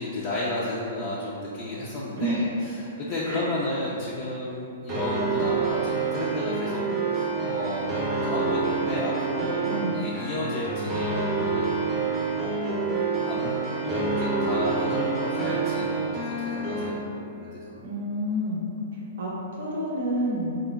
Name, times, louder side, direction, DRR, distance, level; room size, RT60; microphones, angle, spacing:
voice 1, 0.0-6.8 7.1-11.7 12.3-12.9 13.2-13.5 13.8-17.8, left 1 dB, 45° left, -7 dB, 0.4 m, -33 dB
voice 2, 2.2-2.5 3.2-3.4 9.6-10.0 17.8-18.6 18.9-20.6, equal, 70° right, -4 dB, 0.6 m, -29 dB
sound 1, 4.9-16.9, right 4 dB, 30° right, 0.6 m, -27 dB
3.7 x 2.1 x 2.2 m, 2.7 s
hypercardioid pair, 125°, 0 cm